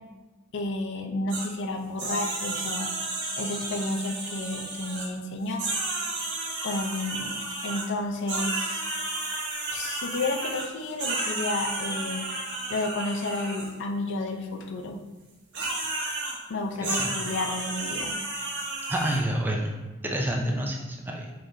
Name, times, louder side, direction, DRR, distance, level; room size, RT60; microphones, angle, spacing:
voice 1, 0.5-2.9 3.4-5.6 5.9-6.1 6.6-7.4 7.6-8.8 9.7-12.3 12.7-15.0 16.5-18.1, left 2 dB, 60° left, 4 dB, 0.5 m, -31 dB
sound 1, 1.3-1.5 2.0-5.1 5.5-7.9 8.3-13.7 15.5-16.4 16.8-19.2, right 2 dB, 55° right, 1.2 m, -32 dB
voice 2, 16.8-17.1 18.9-19.7 20.0-21.3, right 1 dB, 10° right, 0 dB, 0.4 m, -28 dB
5.7 x 3.4 x 2.7 m, 1.2 s
head